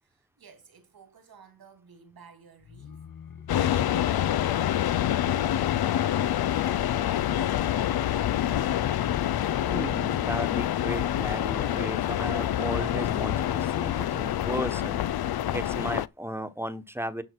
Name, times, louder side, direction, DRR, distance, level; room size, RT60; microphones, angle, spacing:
voice 1, 0.0-3.1 3.6-5.7 5.9-8.4, right 5 dB, 80° right, 2.9 m, -54 dB
sound 1, 2.6-10.3, left 7 dB, 65° left, 1.0 m, -47 dB
sound 2, 3.5-16.1, left 11 dB, 85° left, 0.5 m, -26 dB
voice 2, 9.7-15.0 15.5-17.2, right 1 dB, 5° right, 1.1 m, -35 dB
11.0 x 5.6 x 4.6 m
cardioid pair, 70°, 36 cm